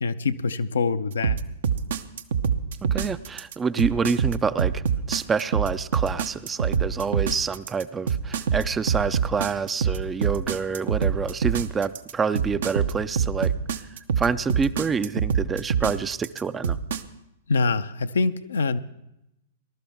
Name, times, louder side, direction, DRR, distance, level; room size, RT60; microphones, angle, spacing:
voice 1, 0.0-1.4 17.5-18.8, left 4 dB, 70° left, 10 dB, 0.6 m, -24 dB
sound 1, 1.2-17.0, right 7 dB, 60° right, 0.7 m, -24 dB
voice 2, 2.8-13.5 14.2-16.8, right 5 dB, 15° right, 15 dB, 0.4 m, -27 dB
19.5 x 12.0 x 3.5 m, 0.84 s
figure-of-eight pair, 100°, 0 cm